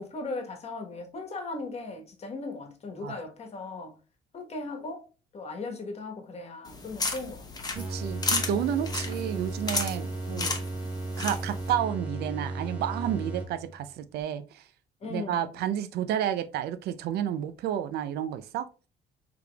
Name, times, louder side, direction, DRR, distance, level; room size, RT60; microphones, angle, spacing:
voice 1, 0.0-4.0 4.3-5.0 5.3-7.5 10.2-10.7 15.0-15.6, left 3 dB, 40° left, 1.2 m, -38 dB
sound 1, 6.7-11.7, left 3 dB, 25° left, 0.9 m, -33 dB
sound 2, 7.7-13.9, right 2 dB, 10° right, 1.0 m, -35 dB
voice 2, 7.8-10.6 11.2-14.6 15.1-18.7, right 10 dB, 70° right, 0.4 m, -31 dB
4.9 x 3.4 x 2.3 m
cardioid pair, 110°, 17 cm